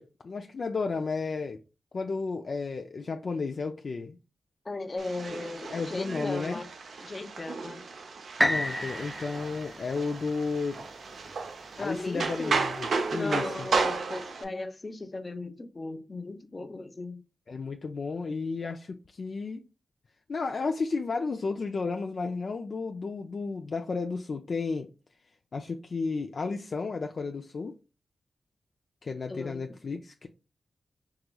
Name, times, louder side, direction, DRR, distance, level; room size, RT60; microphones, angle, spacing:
voice 1, 0.0-1.6 1.9-4.2 5.7-6.6 8.4-10.9 11.8-13.7 17.5-19.7 20.3-24.9 25.5-27.7 29.0-30.3, left 4 dB, 55° left, 0.4 m, -33 dB
voice 2, 4.6-6.7 7.0-7.8 11.8-12.6 13.1-17.2 29.3-29.6, left 2 dB, 35° left, 0.7 m, -37 dB
sound 1, 5.0-14.4, right 4 dB, 80° right, 0.6 m, -34 dB
sound 2, 8.4-12.3 12.9-13.0, left 1 dB, ahead, 0.5 m, -32 dB
4.8 x 2.9 x 2.3 m
cardioid pair, 75°, 0 cm